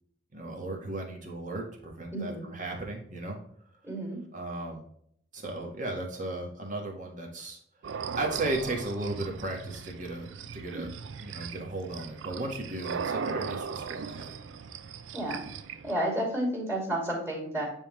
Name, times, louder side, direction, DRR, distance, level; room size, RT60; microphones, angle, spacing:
voice 1, 0.3-3.4 4.3-4.8 5.3-7.6 7.9-10.3 10.5-10.9 11.2-14.3, right 2 dB, 40° right, 1 dB, 1.5 m, -35 dB
voice 2, 2.1-2.5 3.8-4.2 15.1-15.4 15.8-17.7, right 1 dB, 15° right, -1 dB, 2.5 m, -31 dB
sound 1, 7.8-15.9, right 6 dB, 75° right, 0.4 m, -38 dB
9.6 x 3.6 x 3.1 m, 0.69 s
head